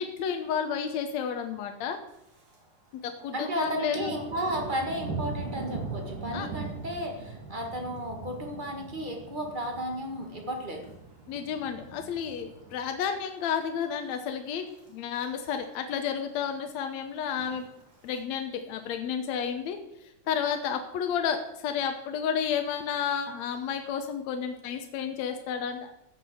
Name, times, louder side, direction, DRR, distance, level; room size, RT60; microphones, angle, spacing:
voice 1, 0.0-2.0 3.0-4.1 6.3-6.5 11.3-17.7 18.0-19.8 20.3-25.9, left 7 dB, 65° left, 6 dB, 2.0 m, -31 dB
Thunder, 2.1-2.6 2.9-13.3 13.6-14.0 14.4-14.9 15.2-15.3 15.4-15.5 15.9-16.5 17.2-18.2, right 4 dB, 85° right, 5.2 m, -41 dB
voice 2, 3.3-10.9, equal, 25° right, 2 dB, 1.1 m, -33 dB
15.0 x 6.0 x 7.8 m, 0.87 s
omnidirectional pair, 3.7 m